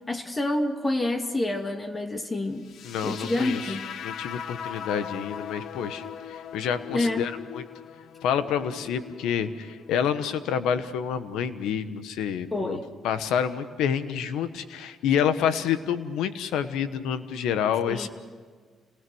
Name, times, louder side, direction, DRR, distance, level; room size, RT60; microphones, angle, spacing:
voice 1, 0.1-2.7 3.0-3.8 6.9-7.3 12.5-12.9 17.9-18.1, left 2 dB, 25° left, 5 dB, 2.2 m, -28 dB
sound 1, 2.6-10.7, left 8 dB, 70° left, 0.9 m, -40 dB
voice 2, 2.8-3.8 4.0-7.6 8.2-12.8 13.0-18.1, left 8 dB, 90° left, 11 dB, 1.2 m, -28 dB
28.0 x 19.0 x 6.3 m, 1.5 s
cardioid pair, 90°, 0 cm